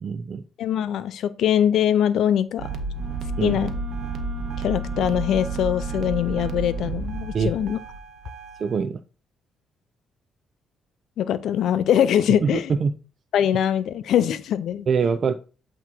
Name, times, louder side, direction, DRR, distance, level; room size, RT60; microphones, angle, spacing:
voice 1, 0.0-0.4 3.4-3.6 7.3-7.5 8.6-9.0 12.4-12.5 12.8-12.9 14.9-15.3, right 6 dB, 50° right, 0.4 m, -23 dB
voice 2, 0.6-2.8 3.4-3.7 4.6-7.8 11.2-12.7 13.3-14.9, left 10 dB, 75° left, 0.5 m, -22 dB
sound 1, 2.6-8.8, right 3 dB, 65° right, 0.9 m, -31 dB
Wind instrument woodwind instrument, 2.9-7.0, right 1 dB, 15° right, 2.0 m, -39 dB
8.2 x 3.0 x 4.4 m
cardioid pair, 90°, 0 cm